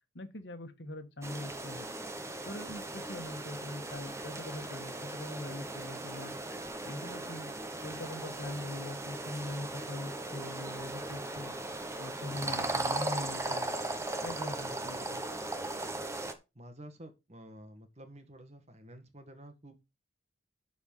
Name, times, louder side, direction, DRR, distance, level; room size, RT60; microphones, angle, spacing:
voice 1, 0.1-1.9 2.4-6.3 6.8-7.5 7.8-11.5 12.0-13.7 14.2-15.2, left 1 dB, 65° left, 1.5 m, -42 dB
sound 1, 1.2-16.3, right 2 dB, 15° right, 1.1 m, -38 dB
voice 2, 16.5-19.9, right 1 dB, 35° right, 1.7 m, -51 dB
12.0 x 4.4 x 5.6 m
head